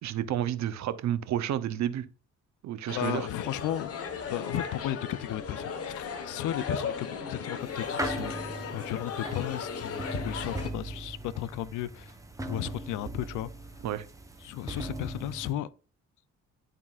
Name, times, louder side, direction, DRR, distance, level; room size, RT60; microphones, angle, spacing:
voice 1, 0.0-2.1 2.6-3.3 13.8-14.1, right 11 dB, 65° right, 0.6 m, -30 dB
voice 2, 2.9-3.9 4.3-12.1 12.5-13.5 14.4-15.7, left 13 dB, 80° left, 0.5 m, -34 dB
sound 1, 2.9-10.7, left 6 dB, 50° left, 1.1 m, -36 dB
sound 2, 7.6-15.5, right 1 dB, 10° right, 0.8 m, -39 dB
11.0 x 3.7 x 2.4 m
cardioid pair, 90°, 30 cm